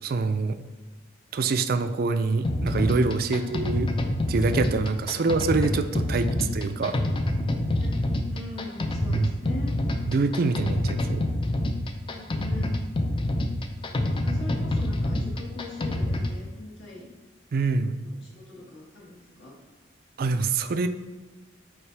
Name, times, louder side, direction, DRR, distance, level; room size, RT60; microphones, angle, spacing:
voice 1, 0.0-0.6 1.3-3.9 4.3-6.3 6.5-7.0 9.1-9.3 10.1-11.3 17.5-17.9 20.2-20.9, right 4 dB, 50° right, 9 dB, 0.4 m, -25 dB
sound 1, 2.4-16.4, left 1 dB, 25° left, 0.4 m, -27 dB
voice 2, 3.2-3.6 5.0-5.2 6.0-6.5 7.8-7.9 8.3-9.8 12.1-12.7 14.2-17.1 17.9-19.5, left 2 dB, 75° left, -4 dB, 2.0 m, -41 dB
7.2 x 4.6 x 3.3 m, 1.3 s
head